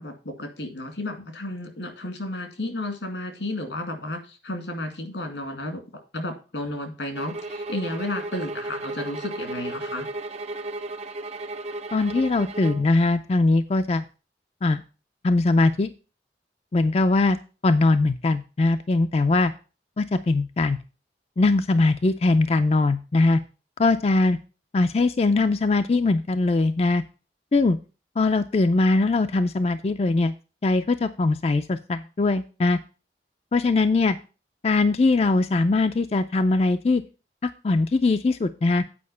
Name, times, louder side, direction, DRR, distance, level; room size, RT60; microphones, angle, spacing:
voice 1, 0.0-5.8 6.1-10.1, left 1 dB, 90° left, 5 dB, 2.2 m, -32 dB
sound 1, 7.1-12.9, right 2 dB, 35° right, 0.5 m, -34 dB
voice 2, 11.9-14.0 14.6-14.8 15.2-15.9 16.7-17.4 17.6-19.5 20.0-20.8 21.4-23.4 23.8-24.4 24.7-27.0 27.5-27.8 28.2-30.3 30.6-32.8 33.5-34.2 34.6-37.0 37.4-38.8, left 3 dB, 35° left, 9 dB, 0.4 m, -21 dB
8.5 x 5.1 x 5.5 m, 0.33 s
head